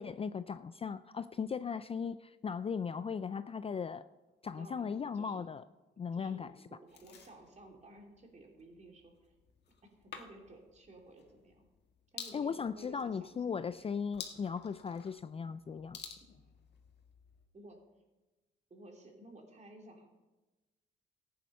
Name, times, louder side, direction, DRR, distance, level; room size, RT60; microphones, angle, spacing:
voice 1, 0.0-4.1 4.4-5.6 6.0-6.5 12.3-16.0, left 6 dB, 30° left, 13 dB, 0.4 m, -37 dB
voice 2, 4.5-5.5 6.1-9.3 9.8-11.7 12.1-13.4 17.5-17.8 18.7-20.1, right 1 dB, 35° right, 1 dB, 3.1 m, -55 dB
sound 1, 6.9-17.5, left 6 dB, 60° left, 1.8 m, -53 dB
14.5 x 9.3 x 5.5 m, 1.1 s
cardioid pair, 90°, 20 cm